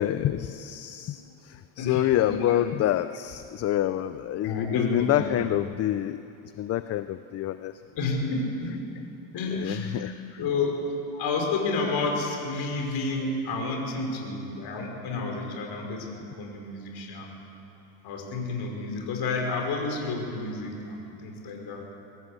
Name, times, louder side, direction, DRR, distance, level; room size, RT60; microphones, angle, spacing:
voice 1, 0.0-6.2 6.6-7.7 9.6-10.4, left 13 dB, 30° left, 12 dB, 0.4 m, -27 dB
voice 2, 1.8-2.4 4.4-5.4 8.0-9.0 9.3-9.9 10.4-10.8 11.2-17.3 18.0-21.9, left 3 dB, 50° left, 1 dB, 5.4 m, -30 dB
22.5 x 17.0 x 8.2 m, 2.8 s
cardioid pair, 125°, 49 cm